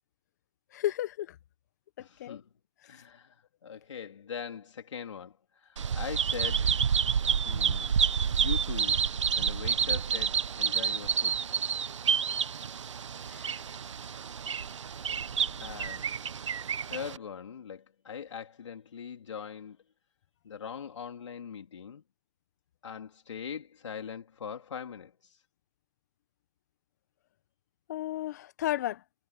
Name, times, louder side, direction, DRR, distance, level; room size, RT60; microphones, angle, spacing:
voice 1, 0.7-1.4 2.0-2.4 13.3-13.6 27.9-29.0, left 13 dB, 30° left, 1.1 m, -33 dB
voice 2, 2.0-2.5 2.8-6.7 7.4-8.0 8.3-9.0 9.4-11.4 15.6-16.1 16.9-19.8 20.4-22.0 22.8-25.4, left 7 dB, 60° left, 3.7 m, -41 dB
Bird vocalization bird call bird song, 5.8-17.2, right 7 dB, 60° right, 1.4 m, -29 dB
hypercardioid pair, 160°, 17 cm